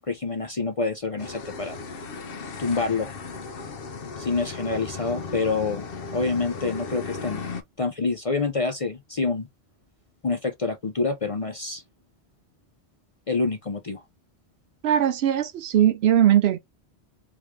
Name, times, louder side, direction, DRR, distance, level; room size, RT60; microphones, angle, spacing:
voice 1, 0.1-1.8 2.6-3.1 4.2-5.9 6.1-7.4 7.8-9.5 10.2-11.8 13.3-14.0, left 4 dB, 40° left, 0.6 m, -27 dB
sound 1, 1.2-7.6, left 4 dB, 60° left, 0.9 m, -36 dB
voice 2, 14.8-16.6, right 10 dB, 70° right, 0.8 m, -20 dB
3.5 x 3.0 x 3.2 m
omnidirectional pair, 1.2 m